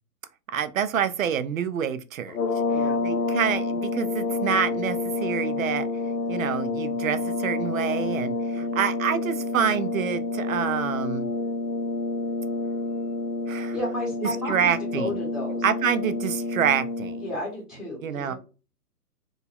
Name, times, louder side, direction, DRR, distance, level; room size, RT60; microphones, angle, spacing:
voice 1, 0.5-2.4 3.0-5.9 6.3-11.3 13.5-13.7 14.5-15.1 15.6-17.2 18.0-18.3, right 8 dB, 60° right, 0.5 m, -27 dB
sound 1, 2.3-17.4, left 3 dB, 75° left, 0.9 m, -28 dB
voice 2, 2.7-3.0 8.5-8.8 13.5-15.6 17.2-18.3, left 1 dB, ahead, 0.9 m, -33 dB
3.8 x 2.3 x 2.3 m
figure-of-eight pair, 125°, 47 cm